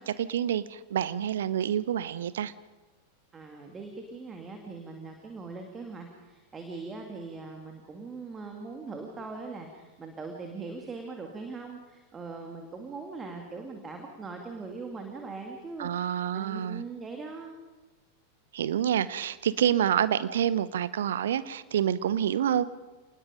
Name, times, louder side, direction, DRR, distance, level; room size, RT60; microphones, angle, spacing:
voice 1, 0.0-2.5 15.8-16.8 18.5-22.6, right 10 dB, 60° right, 16 dB, 0.8 m, -27 dB
voice 2, 3.3-17.5, right 4 dB, 20° right, 3 dB, 2.5 m, -41 dB
29.0 x 20.0 x 5.1 m, 1.2 s
figure-of-eight pair, 90°, 0 cm